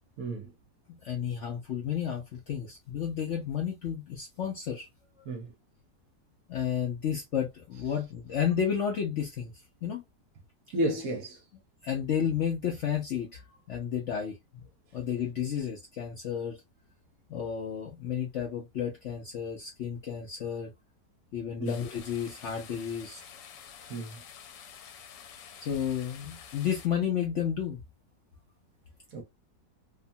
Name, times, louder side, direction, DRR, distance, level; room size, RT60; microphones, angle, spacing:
voice 1, 0.2-0.5 5.3-5.5 10.7-11.4 21.6-21.7 23.9-24.2 29.1-29.2, right 1 dB, 60° right, 1.1 m, -32 dB
voice 2, 0.9-4.9 6.5-9.5 9.8-10.0 11.8-14.7 14.9-16.6 17.3-20.7 21.3-23.2 25.6-27.8, left 8 dB, 60° left, 0.7 m, -32 dB
sound 1, 21.7-26.9, left 8 dB, 85° left, 1.3 m, -49 dB
2.9 x 2.2 x 2.6 m
omnidirectional pair, 1.9 m